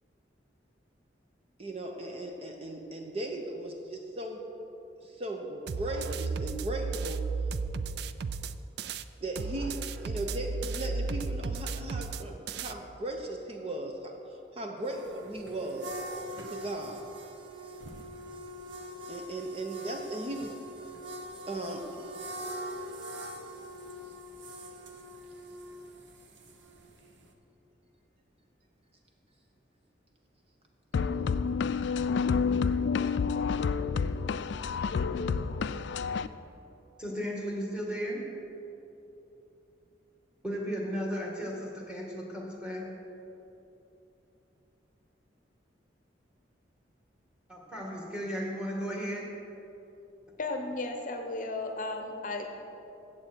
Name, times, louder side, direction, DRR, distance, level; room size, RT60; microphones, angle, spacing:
voice 1, 1.6-4.4 5.0-7.2 9.2-16.0 16.5-17.0 19.1-20.5 21.5-22.1, right 1 dB, 35° right, 2 dB, 0.7 m, -37 dB
sound 1, 5.7-9.0 9.4-12.7, right 4 dB, 60° right, 0.4 m, -34 dB
sound 2, 14.8-27.3, equal, 85° right, 1.0 m, -43 dB
sound 3, 30.9-36.3, left 5 dB, 65° left, 0.3 m, -29 dB
voice 2, 37.0-38.2 40.4-42.9 47.5-49.3, equal, 5° right, -2 dB, 2.0 m, -35 dB
voice 3, 50.4-52.5, left 2 dB, 45° left, 4 dB, 0.8 m, -34 dB
14.5 x 7.8 x 4.5 m, 3.0 s
head